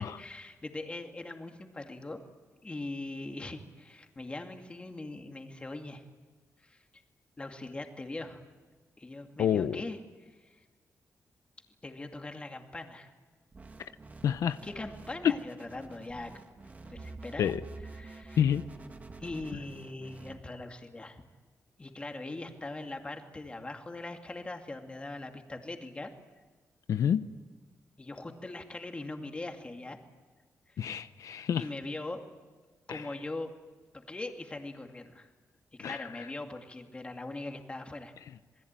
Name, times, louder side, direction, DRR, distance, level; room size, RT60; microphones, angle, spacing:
voice 1, 0.0-2.2 2.6-6.0 6.6-6.8 7.4-8.4 9.0-10.0 10.5-10.6 11.8-13.1 14.6-16.3 16.8-17.5 17.9-18.5 19.2-21.2 21.8-26.1 28.0-30.0 30.7-30.8 31.6-32.2 32.9-33.5 33.9-35.3 35.8-38.1, left 2 dB, 20° left, 4 dB, 2.3 m, -41 dB
voice 2, 9.4-9.8 14.2-14.6 17.4-17.6 18.4-18.6 26.9-27.2 30.8-31.6 32.9-33.0 35.8-36.0, left 9 dB, 80° left, 12 dB, 0.7 m, -28 dB
sound 1, 13.5-20.4, right 3 dB, 30° right, 1.5 m, -48 dB
27.5 x 21.0 x 9.0 m, 1.4 s
wide cardioid pair, 140°, 6 cm